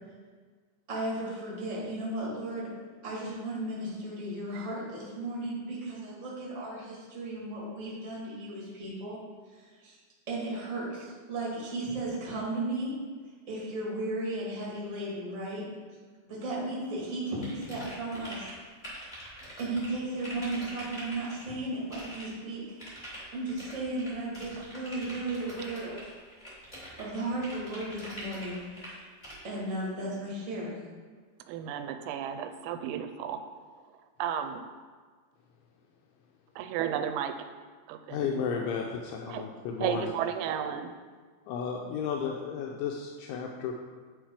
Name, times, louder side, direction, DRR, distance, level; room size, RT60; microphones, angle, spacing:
voice 1, 0.9-2.7 3.0-9.2 9.8-10.0 10.3-13.0 13.5-15.7 16.2-18.5 19.6-22.6 23.1-26.1 27.0-29.1 29.4-30.8, right 2 dB, 50° right, -7 dB, 0.8 m, -35 dB
sound 1, 17.4-18.5 18.8-21.4 21.9-22.2 22.8-28.9 29.2-29.4, equal, 60° left, 0.4 m, -44 dB
voice 2, 31.5-33.4 34.2-34.6 36.6-37.4 37.9-38.3 39.3-39.5 39.8-40.9, right 9 dB, 85° right, 8 dB, 2.7 m, -33 dB
voice 3, 38.1-40.1 41.5-43.7, left 6 dB, 85° left, 0 dB, 2.9 m, -33 dB
11.0 x 4.0 x 4.7 m, 1.5 s
omnidirectional pair, 5.5 m